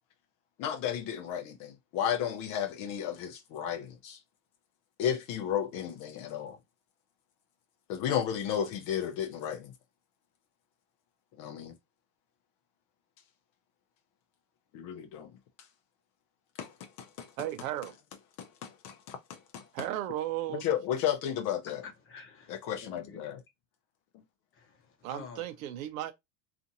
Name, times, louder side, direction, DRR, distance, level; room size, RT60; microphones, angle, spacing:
voice 1, 0.6-4.2 5.0-6.6 7.9-9.7 11.4-11.8 14.7-15.3 16.6-17.3 18.4-19.7 20.5-21.8 22.5-23.4, left 9 dB, 50° left, 0.5 m, -33 dB
voice 2, 17.4-17.9 19.7-20.6 25.0-26.1, right 13 dB, 75° right, 0.5 m, -35 dB
voice 3, 21.8-23.3 24.5-25.5, left 5 dB, 30° left, 0.9 m, -49 dB
2.6 x 2.5 x 2.6 m
supercardioid pair, 110°, 41 cm